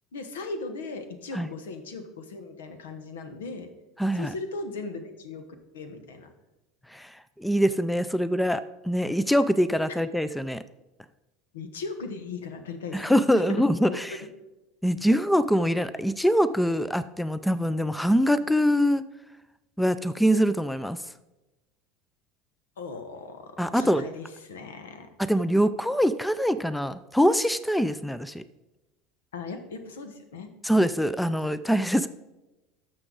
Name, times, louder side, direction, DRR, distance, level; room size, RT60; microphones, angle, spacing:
voice 1, 0.1-3.7 4.1-5.4 5.7-6.3 11.5-13.1 13.5-14.3 22.8-25.1 29.3-30.5, left 3 dB, 85° left, 8 dB, 1.1 m, -38 dB
voice 2, 4.0-4.3 6.9-10.6 12.9-14.2 14.8-19.0 19.8-21.0 23.6-24.0 25.2-28.4 30.6-32.1, equal, 5° left, 15 dB, 0.4 m, -24 dB
12.0 x 6.7 x 3.9 m, 1.0 s
hypercardioid pair, 90°, 0 cm